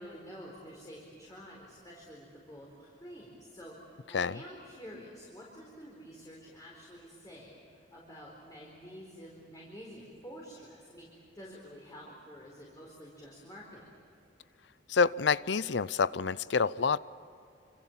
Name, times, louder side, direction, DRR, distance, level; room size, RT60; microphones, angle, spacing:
voice 1, 0.0-14.0, equal, 20° left, -3 dB, 4.3 m, -49 dB
voice 2, 14.9-17.0, left 5 dB, 70° left, 19 dB, 0.6 m, -27 dB
26.5 x 26.5 x 7.4 m, 2.6 s
head